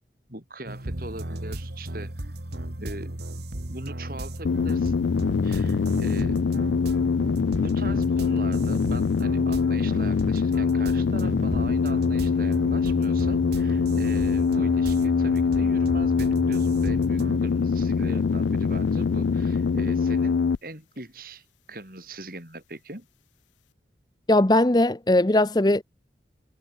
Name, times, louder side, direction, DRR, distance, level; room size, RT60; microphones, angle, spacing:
voice 1, 0.3-2.3 2.8-3.1 3.7-5.1 5.4-6.4 7.6-23.1, right 1 dB, 50° right, 5.6 m, -40 dB
sound 1, 0.6-17.4, right 1 dB, 70° right, 2.2 m, -35 dB
sound 2, 4.4-20.6, left 5 dB, 85° left, 0.4 m, -23 dB
voice 2, 24.3-25.8, left 1 dB, 20° left, 0.8 m, -19 dB
head